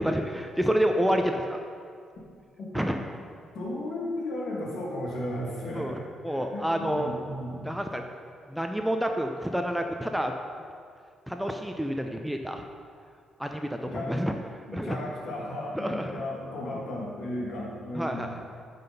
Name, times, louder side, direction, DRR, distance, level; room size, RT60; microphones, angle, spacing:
voice 1, 0.0-1.6 2.7-3.0 5.7-7.1 7.6-8.0 8.5-10.3 11.3-12.6 13.4-14.3 14.7-15.0 15.7-16.2 17.9-18.4, equal, 5° right, 4 dB, 0.6 m, -28 dB
voice 2, 3.5-7.7 13.9-14.3 14.7-18.4, left 1 dB, 65° left, -3 dB, 2.5 m, -35 dB
9.1 x 5.8 x 5.4 m, 2.2 s
cardioid pair, 90°, 0 cm